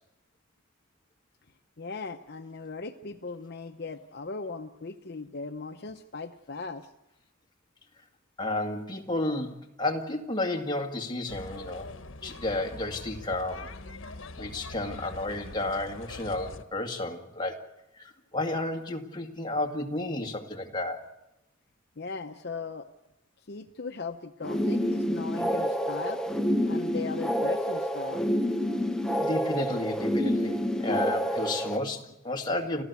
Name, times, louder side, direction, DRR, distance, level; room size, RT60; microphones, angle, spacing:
voice 1, 1.8-6.9 22.0-22.9 23.5-26.2 26.7-28.3, left 4 dB, 55° left, 7 dB, 0.8 m, -38 dB
voice 2, 8.4-11.9 12.2-13.7 14.4-17.6 18.0-21.0 29.2-32.8, left 2 dB, 20° left, 3 dB, 2.0 m, -32 dB
sound 1, 11.3-16.6, left 2 dB, 70° left, 1.2 m, -43 dB
sound 2, 24.4-31.8, equal, 5° left, 0.8 m, -28 dB
28.5 x 14.5 x 8.3 m, 0.93 s
head